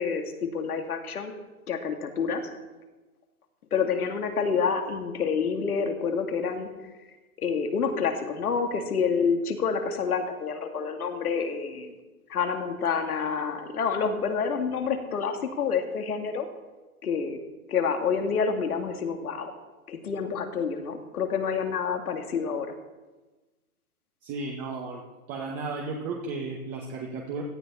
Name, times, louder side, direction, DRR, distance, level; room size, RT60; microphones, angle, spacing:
voice 1, 0.0-1.3 1.7-2.5 3.7-6.7 7.4-11.9 12.3-16.5 17.0-17.4 17.7-19.5 19.9-22.7, left 6 dB, 75° left, 5 dB, 2.4 m, -28 dB
voice 2, 24.2-25.0 25.3-27.4, right 3 dB, 30° right, 0 dB, 1.9 m, -34 dB
17.0 x 12.5 x 4.3 m, 1.2 s
hypercardioid pair, 130°, 45 cm